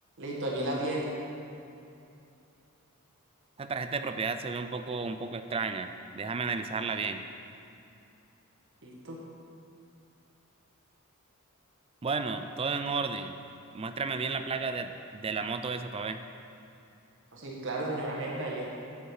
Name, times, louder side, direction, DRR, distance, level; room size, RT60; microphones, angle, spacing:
voice 1, 0.2-1.1 8.8-9.2 17.3-18.6, right 1 dB, 60° right, -3 dB, 1.5 m, -33 dB
voice 2, 3.6-7.2 12.0-13.4 13.7-16.2, right 4 dB, 25° right, 8 dB, 0.4 m, -33 dB
8.8 x 7.8 x 4.9 m, 2.7 s
head